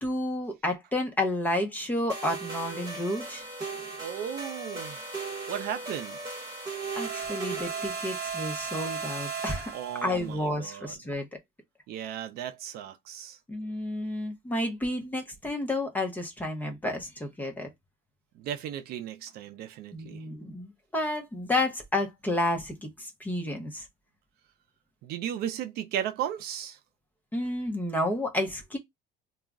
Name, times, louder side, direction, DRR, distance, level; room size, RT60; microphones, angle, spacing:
voice 1, 0.0-3.4 7.0-9.7 10.0-11.3 13.5-17.7 19.9-23.9 27.3-28.8, left 1 dB, 10° left, 0.5 m, -31 dB
sound 1, 2.1-10.2, right 4 dB, 20° right, 1.0 m, -36 dB
voice 2, 4.0-5.0 5.5-6.2 9.7-11.0 11.9-13.4 18.4-20.2 25.0-26.8, right 10 dB, 60° right, 0.4 m, -35 dB
2.3 x 2.0 x 3.4 m
cardioid pair, 155°, 19 cm